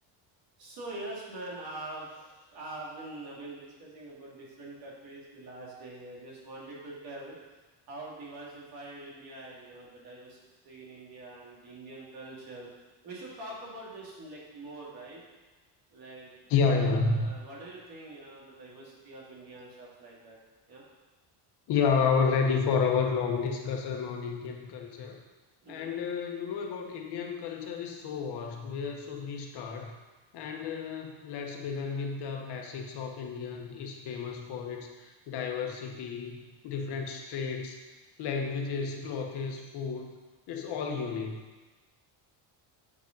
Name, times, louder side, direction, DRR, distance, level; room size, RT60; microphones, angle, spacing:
voice 1, 0.6-7.4 7.9-12.7 13.0-15.2 15.9-16.3 16.6-20.4 20.7-20.8 25.6-26.0, right 2 dB, 55° right, -5 dB, 2.8 m, -44 dB
voice 2, 16.5-17.3 21.7-25.2 25.7-29.9 30.3-37.7 38.2-40.2 40.5-41.4, left 5 dB, 65° left, 2 dB, 1.3 m, -31 dB
8.5 x 5.2 x 5.4 m, 1.2 s
cardioid pair, 160°, 44 cm